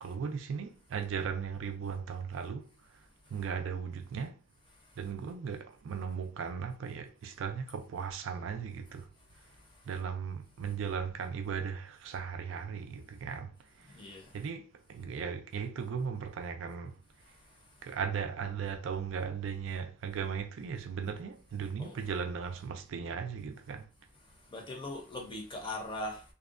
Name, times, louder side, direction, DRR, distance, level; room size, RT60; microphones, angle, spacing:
voice 1, 0.0-2.7 3.3-4.4 5.0-9.1 9.9-13.5 13.8-14.0 14.3-17.0 17.8-23.9, right 6 dB, 60° right, 0.3 m, -37 dB
voice 2, 13.9-14.3 21.8-22.0 24.5-26.2, left 1 dB, 20° left, 0.6 m, -40 dB
2.6 x 2.1 x 2.4 m
head